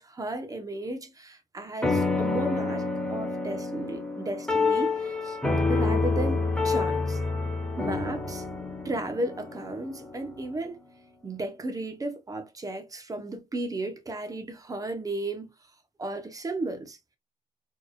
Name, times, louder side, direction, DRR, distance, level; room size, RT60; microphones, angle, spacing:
voice 1, 0.0-5.4 5.7-7.2 7.8-8.5 8.8-10.8 11.2-15.5 16.0-17.0, right 2 dB, 25° right, 1.0 m, -34 dB
sound 1, 1.8-10.5, left 3 dB, 5° left, 1.1 m, -28 dB
4.5 x 3.2 x 2.4 m
cardioid pair, 100°, 15 cm